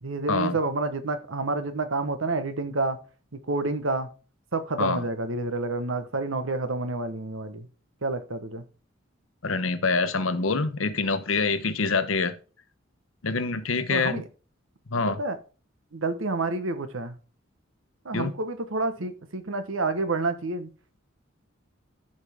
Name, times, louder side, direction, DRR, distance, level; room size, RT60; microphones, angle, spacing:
voice 1, 0.0-3.0 3.5-4.1 4.5-7.7 8.0-8.6 13.9-14.2 15.1-15.4 15.9-17.1 18.0-20.7, right 3 dB, 80° right, 1.1 m, -29 dB
voice 2, 9.4-12.3 13.2-14.2 14.9-15.2 18.1-18.3, left 4 dB, 85° left, 1.0 m, -25 dB
13.5 x 5.4 x 3.5 m
head